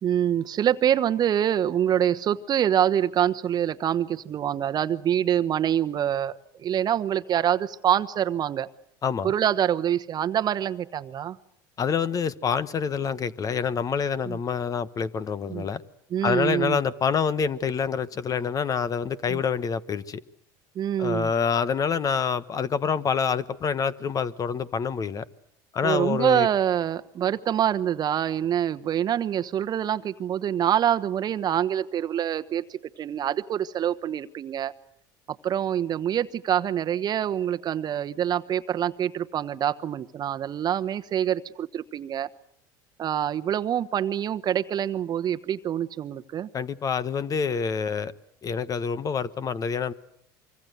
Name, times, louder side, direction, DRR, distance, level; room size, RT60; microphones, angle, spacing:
voice 1, 0.0-8.7 9.2-11.4 14.3-14.4 15.5-15.7 16.1-16.8 19.3-19.4 20.7-21.3 25.8-34.7 35.3-42.3 43.0-46.5, right 10 dB, 40° right, 1.1 m, -25 dB
voice 2, 9.0-9.3 11.8-15.8 16.2-20.2 21.0-25.2 25.7-26.5 46.5-48.1 48.4-49.9, left 6 dB, 35° left, 1.2 m, -27 dB
25.0 x 24.5 x 8.0 m
supercardioid pair, 100°, 10 cm